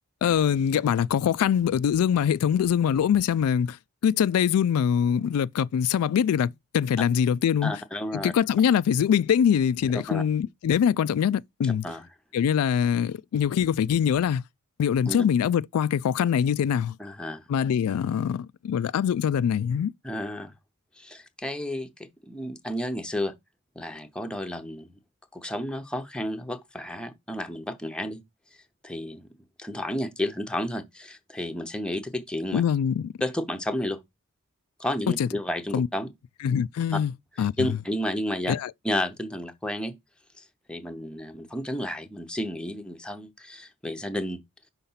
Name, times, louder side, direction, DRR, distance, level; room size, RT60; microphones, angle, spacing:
voice 1, 0.2-3.8 4.0-7.7 8.1-11.9 12.3-14.4 14.8-17.0 17.5-19.9 32.5-33.1 35.1-35.3 35.7-35.9 36.4-37.1 37.4-37.7 38.5-38.7, left 8 dB, 90° left, 0.3 m, -23 dB
voice 2, 7.6-8.3 10.1-10.2 11.6-12.0 15.1-15.2 17.0-17.4 20.0-20.5 21.0-23.3 23.8-24.9 25.3-28.2 28.8-29.3 29.6-32.6 33.2-34.0 34.8-36.1 36.9-37.0 37.4-38.5 38.8-39.9 40.7-44.4, left 1 dB, 5° left, 0.7 m, -32 dB
5.7 x 3.7 x 5.6 m
head